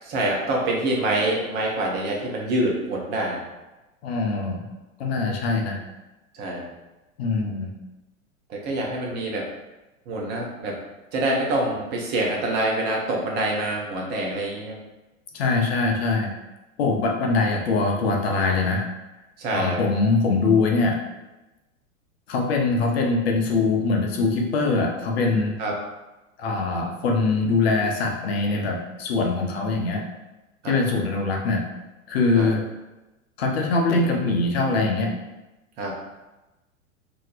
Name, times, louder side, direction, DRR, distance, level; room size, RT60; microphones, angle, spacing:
voice 1, 0.0-3.4 6.3-6.7 8.5-9.5 10.1-10.8 11.1-14.8 19.4-19.8 25.6-25.7 30.6-30.7 32.3-32.5 35.8-36.0, right 1 dB, 25° right, -1 dB, 0.6 m, -26 dB
voice 2, 4.0-4.7 5.0-5.8 7.2-7.7 15.3-16.3 16.8-18.8 19.5-21.0 22.3-25.6 26.4-30.0 30.6-31.6 32.1-32.6 33.4-35.1, left 3 dB, 45° left, 0 dB, 0.7 m, -22 dB
2.8 x 2.1 x 3.9 m, 1.0 s
figure-of-eight pair, 100°, 42 cm